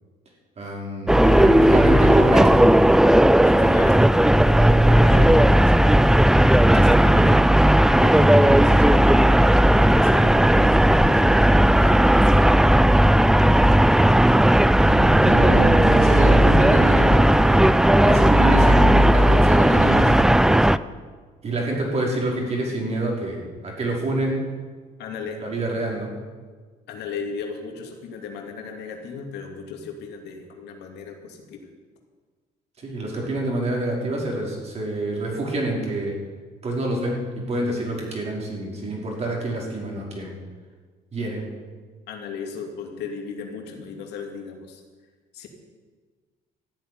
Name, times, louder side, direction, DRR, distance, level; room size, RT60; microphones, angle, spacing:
voice 1, 0.6-2.7 14.8-17.6 18.0-20.5 21.4-23.4 23.6-24.4 25.4-26.1 32.8-36.1 36.6-37.2 37.5-40.3 41.1-41.5, right 1 dB, 40° right, -2 dB, 4.9 m, -26 dB
voice 2, 1.1-1.8 3.4-7.4 8.0-9.3 9.7-12.6 25.0-25.4 26.9-31.6 42.1-44.8 45.3-45.5, left 5 dB, 80° left, 2 dB, 2.6 m, -36 dB
sound 1, 1.1-20.8, right 1 dB, 5° right, 0.3 m, -15 dB
13.5 x 8.5 x 9.4 m, 1.5 s
cardioid pair, 110°, 17 cm